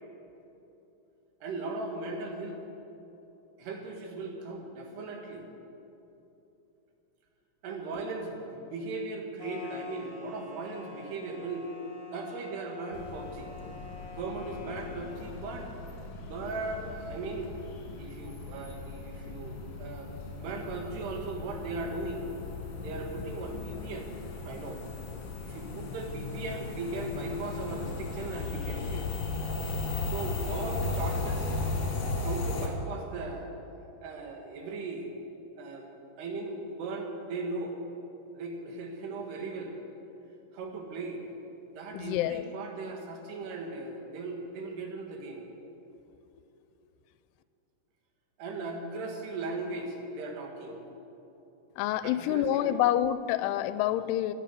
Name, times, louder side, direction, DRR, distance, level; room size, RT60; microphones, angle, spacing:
voice 1, 1.4-2.6 3.6-5.5 7.6-11.7 12.1-13.5 14.2-15.7 16.2-17.5 18.0-20.1 20.4-22.4 22.8-24.1 24.4-24.8 25.4-29.1 30.1-31.8 32.2-33.5 34.0-35.1 35.6-35.9 36.2-37.8 38.3-39.8 40.5-41.2 41.8-45.5 48.4-50.8 52.0-52.8, right 3 dB, 75° right, 2 dB, 3.8 m, -38 dB
sound 1, 9.4-15.4, left 4 dB, 30° left, 3.4 m, -46 dB
sound 2, 12.9-32.7, left 3 dB, 45° left, 2.6 m, -36 dB
voice 2, 41.9-42.4 51.8-54.3, left 12 dB, 85° left, 14 dB, 2.5 m, -27 dB
17.0 x 9.7 x 8.4 m, 3.0 s
omnidirectional pair, 4.8 m